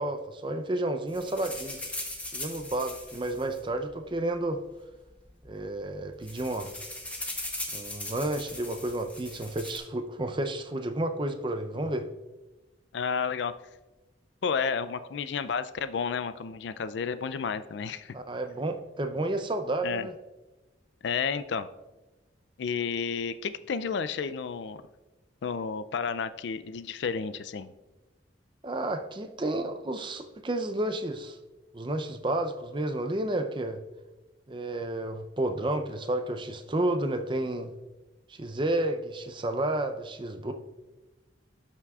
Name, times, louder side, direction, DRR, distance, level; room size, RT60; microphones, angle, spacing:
voice 1, 0.0-1.8 2.3-4.6 5.4-6.7 7.7-12.1 18.1-20.1 28.6-31.4 31.7-33.8 34.5-37.7 38.4-40.5, right 1 dB, 25° right, 7 dB, 0.5 m, -31 dB
sound 1, 1.1-4.3 5.1-5.2 5.5-5.7 6.0-9.8, left 1 dB, 10° left, 0.9 m, -39 dB
voice 2, 12.9-13.5 14.4-18.2 19.8-20.1 21.0-21.7 22.6-24.8 25.4-27.7, left 6 dB, 70° left, 13 dB, 0.4 m, -31 dB
12.5 x 5.8 x 2.4 m, 1.1 s
head